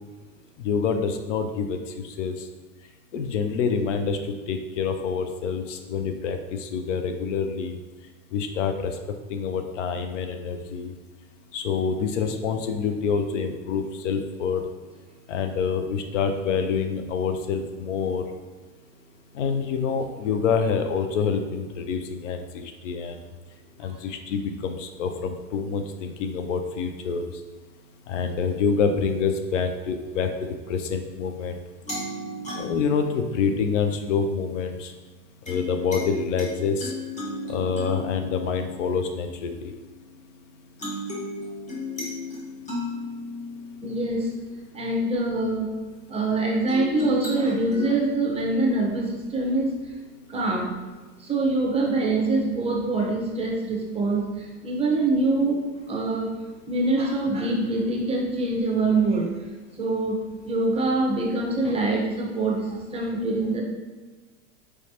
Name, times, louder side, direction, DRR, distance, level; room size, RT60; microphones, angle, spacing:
voice 1, 0.6-2.5 3.1-7.8 8.3-9.0 9.3-10.9 11.5-14.7 15.3-18.2 19.3-23.2 23.8-27.3 28.1-31.6 32.5-34.9 35.5-36.9 37.5-39.7, left 5 dB, 90° left, 7 dB, 0.6 m, -27 dB
sound 1, 31.9-34.1 35.5-40.2 40.8-45.0 46.7-47.8, left 2 dB, 20° left, 1.3 m, -35 dB
voice 2, 43.8-44.3 44.7-45.7 46.1-49.7 50.3-50.7 51.2-55.6 55.9-56.4 56.7-59.3 59.8-63.6, right 2 dB, 15° right, -1 dB, 0.9 m, -24 dB
4.7 x 3.2 x 2.9 m, 1.3 s
supercardioid pair, 115°, 36 cm